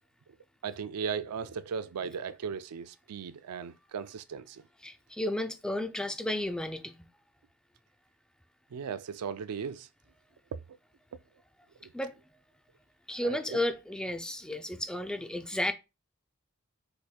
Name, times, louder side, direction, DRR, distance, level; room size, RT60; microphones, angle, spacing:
voice 1, 0.6-4.6 8.7-9.9 11.8-11.9 13.2-13.6, right 6 dB, 90° right, 0.4 m, -37 dB
voice 2, 4.8-7.1 11.9-12.1 13.1-15.7, left 1 dB, 5° left, 0.3 m, -33 dB
4.7 x 4.2 x 2.3 m
head